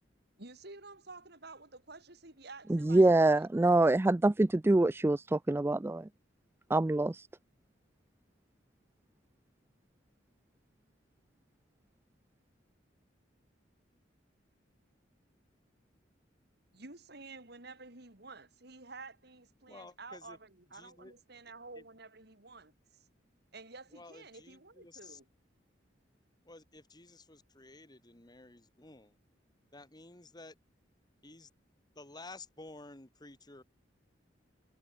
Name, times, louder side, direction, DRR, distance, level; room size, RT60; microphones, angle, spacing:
voice 1, 0.4-3.5 16.7-23.1 23.5-25.3, right 3 dB, 60° right, 4.1 m, -51 dB
voice 2, 2.7-6.1 6.7-7.3, right 2 dB, 15° right, 0.3 m, -25 dB
voice 3, 19.7-20.4 20.7-21.1 21.8-21.9 23.9-25.2 26.5-29.1 29.7-30.5 31.2-31.5 32.0-33.6, left 2 dB, 20° left, 2.0 m, -52 dB
head